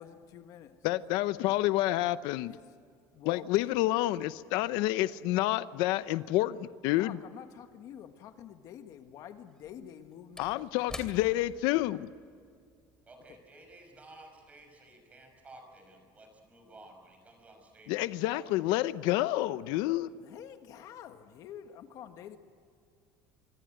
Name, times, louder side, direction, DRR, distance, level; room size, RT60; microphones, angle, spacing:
voice 1, 0.0-0.8 2.5-2.6 3.1-3.7 7.0-10.9 13.3-13.4 20.2-22.4, left 9 dB, 50° left, 7 dB, 1.5 m, -48 dB
voice 2, 0.8-2.5 3.3-7.2 10.4-12.1 17.9-20.1, left 16 dB, 80° left, 15 dB, 0.7 m, -29 dB
Slam / Wood, 7.9-8.0 9.5-14.2 14.5-14.6, left 2 dB, 10° left, 2.7 m, -49 dB
voice 3, 13.1-18.6, right 2 dB, 20° right, 4 dB, 6.0 m, -54 dB
25.0 x 25.0 x 7.9 m, 2.2 s
cardioid pair, 165°, 7 cm